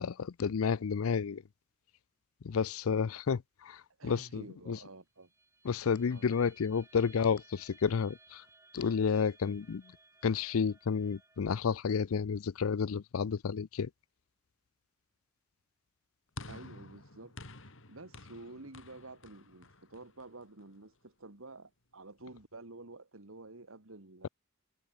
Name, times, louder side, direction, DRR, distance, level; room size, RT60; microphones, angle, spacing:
voice 1, 0.0-1.4 2.4-4.8 5.6-8.4 8.7-9.8 10.2-13.9, left 6 dB, 80° left, 0.5 m, -31 dB
voice 2, 4.0-5.3 6.1-6.3 16.5-24.3, right 2 dB, 70° right, 2.1 m, -50 dB
sound 1, 5.2-11.8, right 3 dB, 15° right, 4.5 m, -62 dB
sound 2, 16.4-20.8, left 2 dB, 65° left, 3.7 m, -50 dB
head